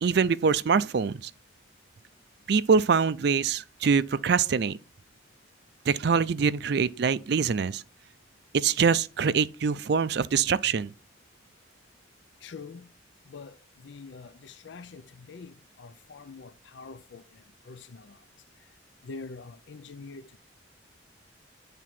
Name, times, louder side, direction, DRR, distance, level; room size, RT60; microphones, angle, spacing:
voice 1, 0.0-1.3 2.5-4.8 5.9-7.8 8.5-10.9, right 6 dB, 60° right, 0.4 m, -24 dB
voice 2, 12.4-12.9 13.3-13.5 13.8-17.2 17.7-18.2 19.0-20.4, left 4 dB, 70° left, 0.5 m, -44 dB
9.1 x 3.7 x 5.8 m
head